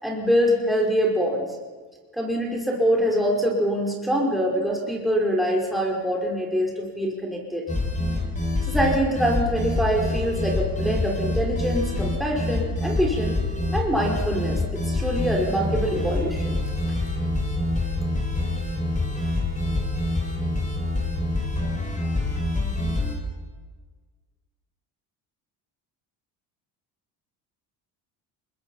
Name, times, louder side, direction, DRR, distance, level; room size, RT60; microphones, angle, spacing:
voice 1, 0.0-1.5 2.1-7.6 8.7-13.4 13.7-16.6, equal, ahead, -2 dB, 5.4 m, -24 dB
sound 1, 7.7-23.1, left 2 dB, 15° left, 7.1 m, -26 dB
25.0 x 21.5 x 5.8 m, 1.4 s
supercardioid pair, 80°, 46 cm